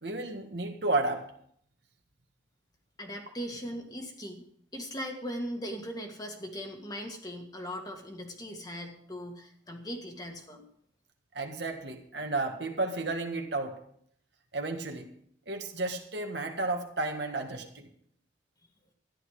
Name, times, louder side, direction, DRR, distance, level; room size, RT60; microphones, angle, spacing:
voice 1, 0.0-1.2 11.3-13.7 14.5-15.1 15.5-17.9, right 2 dB, 60° right, 4 dB, 1.7 m, -32 dB
voice 2, 3.0-4.4 4.7-10.7, equal, 20° left, 2 dB, 1.8 m, -39 dB
13.5 x 11.0 x 4.9 m, 0.65 s
head